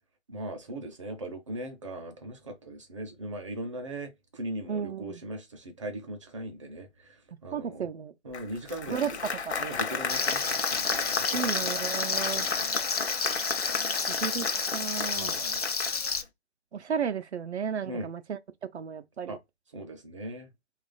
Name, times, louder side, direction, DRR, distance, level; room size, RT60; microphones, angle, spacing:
voice 1, 0.3-7.9 8.2-9.2 9.6-11.8 12.3-12.9 15.1-15.6 17.8-18.1 19.3-19.4 19.7-20.5, right 1 dB, 30° right, 0.5 m, -39 dB
voice 2, 4.7-5.2 7.5-8.1 8.9-9.6 11.3-12.5 14.1-15.3 16.7-18.4 18.7-19.4, right 7 dB, 75° right, 0.5 m, -33 dB
Applause, 8.3-16.2, left 5 dB, 75° left, 0.7 m, -33 dB
Frying (food), 10.1-16.2, left 4 dB, 35° left, 0.4 m, -31 dB
3.0 x 2.4 x 3.8 m
figure-of-eight pair, 145°, 33 cm